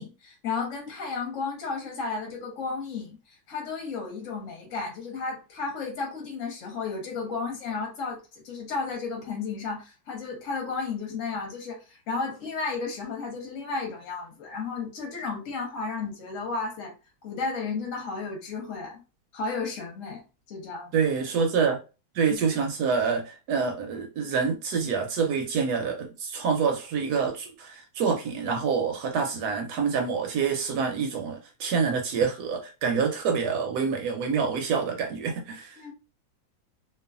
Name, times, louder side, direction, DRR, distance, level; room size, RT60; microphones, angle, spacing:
voice 1, 0.0-16.9 17.2-19.0 19.3-20.9 35.8-35.9, left 4 dB, 50° left, 1.2 m, -33 dB
voice 2, 20.9-21.8 22.1-35.8, right 6 dB, 70° right, 1.0 m, -27 dB
3.0 x 2.2 x 2.4 m
omnidirectional pair, 2.1 m